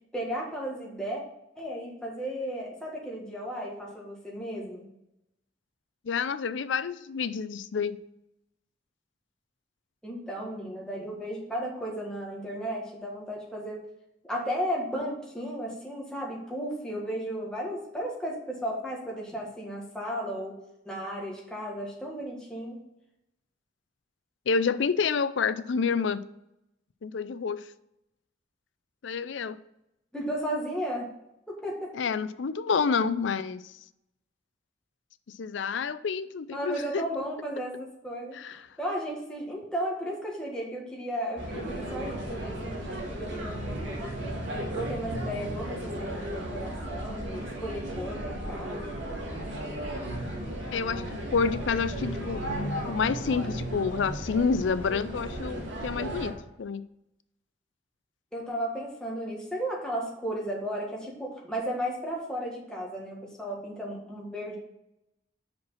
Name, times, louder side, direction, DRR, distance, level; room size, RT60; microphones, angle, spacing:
voice 1, 0.1-1.2 1.6-4.9 10.0-13.8 14.2-20.6 20.8-22.8 30.1-31.1 31.5-31.9 36.5-38.4 38.8-44.4 44.8-49.0 58.3-64.6, equal, 5° left, -3 dB, 1.5 m, -34 dB
voice 2, 6.0-8.0 24.5-26.2 27.0-27.6 29.0-29.6 31.9-33.7 35.4-37.0 38.3-38.7 50.7-51.0 51.3-56.8, left 5 dB, 75° left, 15 dB, 0.4 m, -28 dB
sound 1, 41.4-56.3, right 1 dB, 80° right, 1.9 m, -35 dB
5.9 x 5.2 x 5.5 m, 0.85 s
head